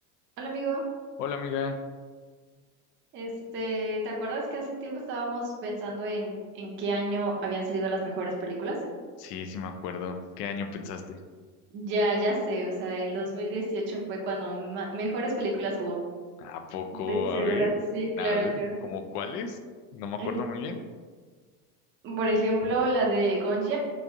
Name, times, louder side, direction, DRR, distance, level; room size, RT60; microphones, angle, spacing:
voice 1, 0.4-0.8 3.1-8.8 11.7-16.0 17.1-18.8 20.2-20.4 22.0-23.8, right 1 dB, 25° right, -2 dB, 0.6 m, -29 dB
voice 2, 1.2-1.8 9.2-11.2 16.4-17.7 18.2-18.5 18.8-19.6 19.9-20.8, left 6 dB, 80° left, 7 dB, 0.6 m, -33 dB
3.2 x 2.5 x 3.5 m, 1.5 s
supercardioid pair, 130°, 46 cm